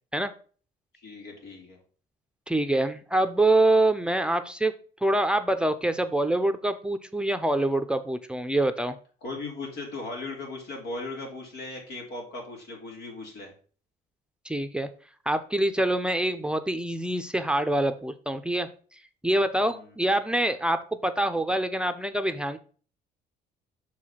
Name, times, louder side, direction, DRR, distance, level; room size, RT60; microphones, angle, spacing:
voice 1, 0.9-1.8 9.2-13.5 19.7-19.9, left 2 dB, 85° left, 0 dB, 3.1 m, -38 dB
voice 2, 2.5-4.7 5.0-9.0 14.4-14.9 15.3-18.7 19.2-22.6, right 1 dB, 5° right, 8 dB, 0.6 m, -25 dB
6.1 x 4.8 x 5.7 m, 0.41 s
cardioid pair, 110°, 17 cm